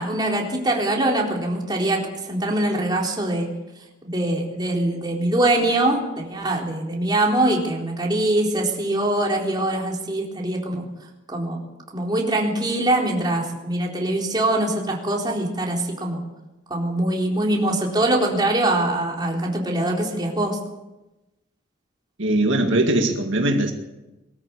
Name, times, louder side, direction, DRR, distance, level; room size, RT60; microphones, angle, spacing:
voice 1, 0.0-2.0 2.3-3.5 4.1-10.8 11.3-11.6 11.9-16.2 16.7-20.6, right 1 dB, 20° right, -1 dB, 4.0 m, -23 dB
voice 2, 22.2-23.7, right 1 dB, 65° right, 3 dB, 2.0 m, -20 dB
23.0 x 14.0 x 8.4 m, 1.0 s
head